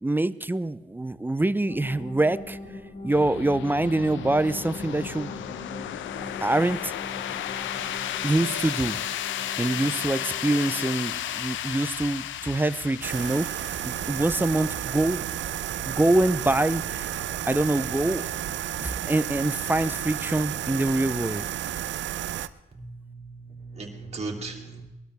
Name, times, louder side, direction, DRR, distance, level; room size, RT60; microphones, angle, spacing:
voice 1, 0.0-2.6 3.0-5.4 6.4-6.9 8.2-9.0 9.6-15.2 15.8-17.2 17.5-18.3 18.8-21.5, right 2 dB, 10° right, 15 dB, 0.5 m, -25 dB
sound 1, 1.7-10.9, left 2 dB, 45° left, 3.6 m, -41 dB
sound 2, 3.1-21.7, left 11 dB, 75° left, 0.7 m, -35 dB
sound 3, 13.0-22.5, right 12 dB, 70° right, 0.7 m, -32 dB
voice 2, 22.7-24.8, right 3 dB, 35° right, 1 dB, 3.1 m, -37 dB
21.5 x 12.5 x 3.4 m, 1.0 s
cardioid pair, 90°, 20 cm